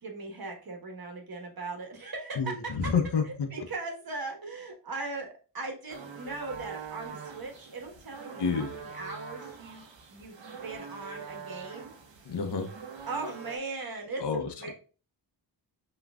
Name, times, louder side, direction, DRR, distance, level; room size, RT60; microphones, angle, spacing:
voice 1, 0.0-2.9 3.2-11.9 13.1-14.7, right 3 dB, 50° right, 3 dB, 1.3 m, -39 dB
voice 2, 2.4-3.5 8.4-8.7 12.3-12.7 14.2-14.7, left 5 dB, 65° left, 5 dB, 1.0 m, -29 dB
sound 1, 5.9-13.6, right 6 dB, 80° right, 1.0 m, -44 dB
5.7 x 3.2 x 2.3 m, 0.36 s
cardioid pair, 65°, 44 cm